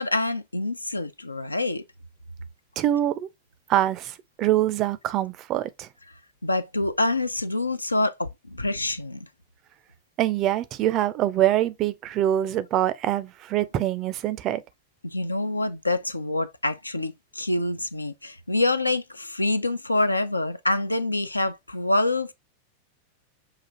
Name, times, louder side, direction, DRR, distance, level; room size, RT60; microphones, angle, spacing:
voice 1, 0.0-1.8 6.4-9.3 15.0-22.3, left 2 dB, 85° left, 0.4 m, -26 dB
voice 2, 2.8-3.3 3.7-5.9 10.2-14.6, right 12 dB, 35° right, 0.4 m, -24 dB
5.7 x 2.5 x 2.7 m
figure-of-eight pair, 90°, 0 cm